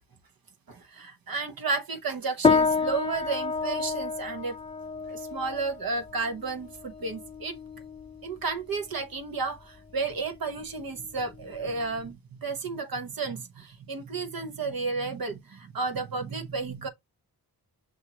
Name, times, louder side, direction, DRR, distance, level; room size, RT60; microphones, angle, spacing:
voice 1, 0.7-4.6 5.1-7.6 8.2-16.9, right 4 dB, 60° right, 0.9 m, -32 dB
sound 1, 2.4-12.1, left 4 dB, 15° left, 0.4 m, -30 dB
6.0 x 2.7 x 2.8 m
cardioid pair, 70°, 39 cm